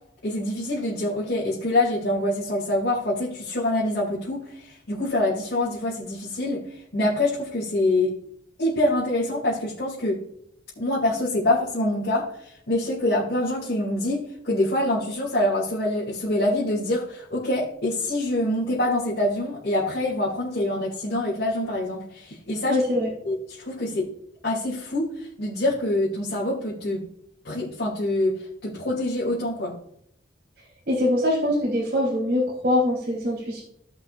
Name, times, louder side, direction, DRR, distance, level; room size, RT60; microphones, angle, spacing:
voice 1, 0.2-8.1 8.6-10.2 10.8-22.8 23.2-24.1 24.4-27.1 27.4-29.8, left 1 dB, 75° left, -7 dB, 2.8 m, -25 dB
voice 2, 22.7-23.1 30.9-33.6, left 1 dB, 55° right, -6 dB, 4.0 m, -23 dB
17.0 x 6.0 x 2.5 m, 0.71 s
head